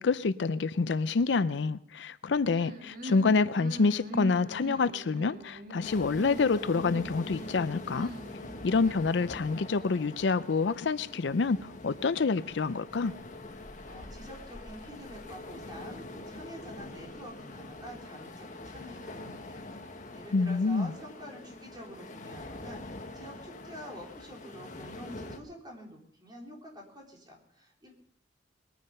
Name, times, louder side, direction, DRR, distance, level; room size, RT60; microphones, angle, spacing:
voice 1, 0.0-8.1 8.6-13.1 20.3-20.9, left 4 dB, 70° left, 0.5 m, -27 dB
sound 1, 2.5-8.9, right 1 dB, 50° right, 1.8 m, -43 dB
sound 2, 5.8-25.4, left 2 dB, 45° left, 1.5 m, -44 dB
voice 2, 13.9-27.9, equal, 25° right, 3.8 m, -47 dB
21.5 x 9.3 x 5.3 m
head